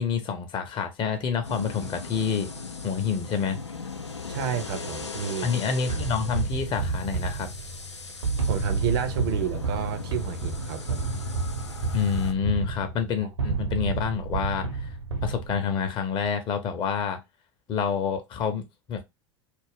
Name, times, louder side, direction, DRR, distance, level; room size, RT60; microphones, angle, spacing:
voice 1, 0.0-2.5 2.8-3.6 5.4-7.5 11.9-14.9 15.2-17.2 17.7-19.0, left 6 dB, 35° left, 0.6 m, -28 dB
sound 1, 1.4-12.3, left 4 dB, 85° left, 0.4 m, -39 dB
voice 2, 4.3-5.5 8.4-11.0, right 7 dB, 55° right, 0.5 m, -30 dB
sound 2, 5.9-15.8, right 4 dB, 75° right, 0.8 m, -30 dB
2.5 x 2.1 x 3.4 m
figure-of-eight pair, 75°, 14 cm